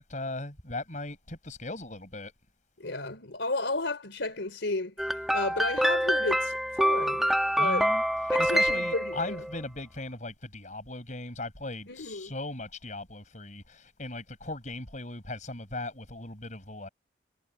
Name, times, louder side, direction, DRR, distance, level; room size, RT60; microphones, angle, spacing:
voice 1, 0.0-2.3 7.6-8.0 8.4-16.9, left 2 dB, 45° left, 6.6 m, -38 dB
voice 2, 2.8-7.3 7.6-7.9 8.3-9.4 11.9-12.3, left 2 dB, 85° left, 3.5 m, -33 dB
sound 1, 5.0-9.6, equal, ahead, 1.2 m, -26 dB
head